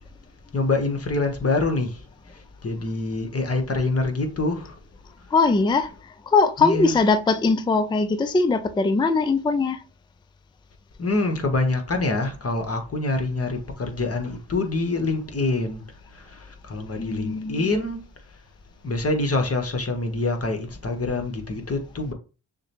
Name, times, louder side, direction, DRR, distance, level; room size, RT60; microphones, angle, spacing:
voice 1, 0.5-1.9 2.6-4.7 6.6-6.9 11.0-15.8 16.7-18.0 18.8-22.1, left 2 dB, 35° left, 1.3 m, -25 dB
voice 2, 5.3-5.9 6.3-9.8 17.0-17.7, left 3 dB, 10° left, 0.4 m, -21 dB
6.3 x 2.2 x 3.0 m
supercardioid pair, 45°, 41 cm